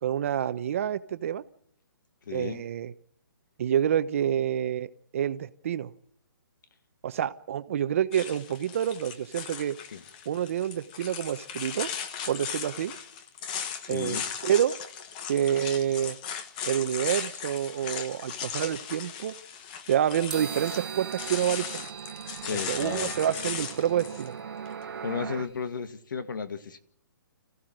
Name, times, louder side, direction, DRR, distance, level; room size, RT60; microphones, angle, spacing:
voice 1, 0.0-1.4 2.3-2.9 3.6-5.9 7.0-9.8 10.3-11.9 12.3-12.9 13.9-14.8 15.3-16.2 16.6-19.3 19.9-21.8 22.7-24.4, right 10 dB, 40° right, 1.0 m, -28 dB
voice 2, 2.3-2.6 9.9-10.0 13.8-14.2 22.5-23.1 25.0-26.8, left 6 dB, 65° left, 2.0 m, -34 dB
sound 1, 8.1-24.3, left 7 dB, 20° left, 1.1 m, -37 dB
sound 2, 20.3-25.6, right 7 dB, 5° right, 2.1 m, -44 dB
sound 3, 20.3-25.5, right 7 dB, 65° right, 1.6 m, -40 dB
26.5 x 15.5 x 9.0 m
hypercardioid pair, 170°, 12 cm